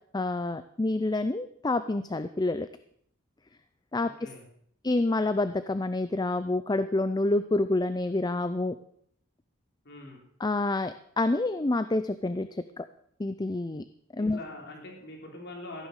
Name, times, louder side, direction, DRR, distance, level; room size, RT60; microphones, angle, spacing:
voice 1, 0.1-2.7 3.9-4.1 4.8-8.8 10.4-12.9 13.2-13.8 14.1-14.4, left 2 dB, 20° left, 11 dB, 0.5 m, -28 dB
voice 2, 4.0-4.4 9.8-10.2 14.2-15.9, left 2 dB, 55° left, 0 dB, 3.7 m, -43 dB
15.0 x 9.5 x 6.6 m, 0.65 s
head